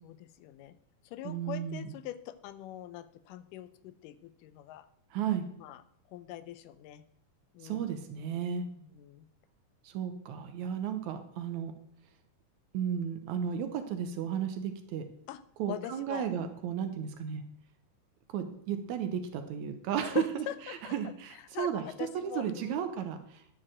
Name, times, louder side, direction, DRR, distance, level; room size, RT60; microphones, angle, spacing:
voice 1, 0.0-0.7 1.0-4.9 5.6-5.8 6.1-7.0 7.5-8.1 8.8-9.3 15.3-16.3 20.1-22.9, left 12 dB, 85° left, 13 dB, 2.2 m, -43 dB
voice 2, 1.2-1.9 5.1-5.5 7.6-8.7 9.8-11.7 12.7-15.0 15.6-17.4 18.3-21.8 22.2-23.4, right 8 dB, 75° right, 7 dB, 2.0 m, -34 dB
10.5 x 4.8 x 7.5 m, 0.69 s
omnidirectional pair, 3.7 m